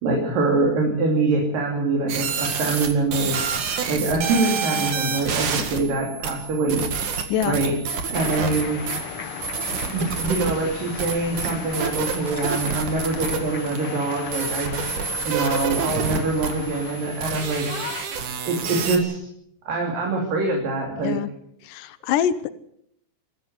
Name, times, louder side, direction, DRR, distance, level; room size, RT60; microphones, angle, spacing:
voice 1, 0.0-3.4 3.9-6.8 7.5-7.7 8.1-8.8 9.7-14.7 15.3-17.7 18.4-19.2 19.7-21.2, right 3 dB, 85° right, 0 dB, 4.9 m, -24 dB
sound 1, 2.1-19.0, right 6 dB, 65° right, 3.6 m, -29 dB
voice 2, 7.3-7.7 21.0-21.3 21.6-22.5, left 9 dB, 80° left, 13 dB, 2.6 m, -25 dB
sound 2, 8.1-18.0, left 7 dB, 55° left, 1.8 m, -36 dB
22.5 x 15.0 x 8.3 m, 0.71 s
omnidirectional pair, 3.8 m